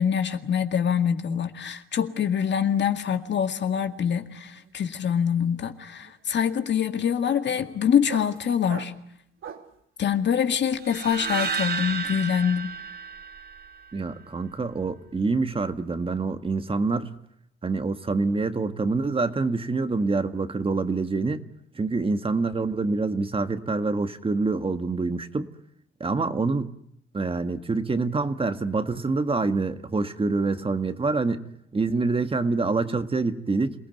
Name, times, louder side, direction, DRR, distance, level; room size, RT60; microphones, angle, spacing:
voice 1, 0.0-8.9 10.0-12.7, left 8 dB, 60° left, 2.0 m, -25 dB
sound 1, 3.0-3.3 3.6-9.8, right 8 dB, 75° right, 2.8 m, -45 dB
sound 2, 10.9-14.0, right 5 dB, 55° right, 4.9 m, -32 dB
voice 2, 13.9-17.1 17.6-21.4 21.7-25.5 26.0-26.7 27.1-31.4 31.7-33.7, right 3 dB, 25° right, 1.7 m, -26 dB
27.5 x 19.0 x 9.2 m
cardioid pair, 115°, 21 cm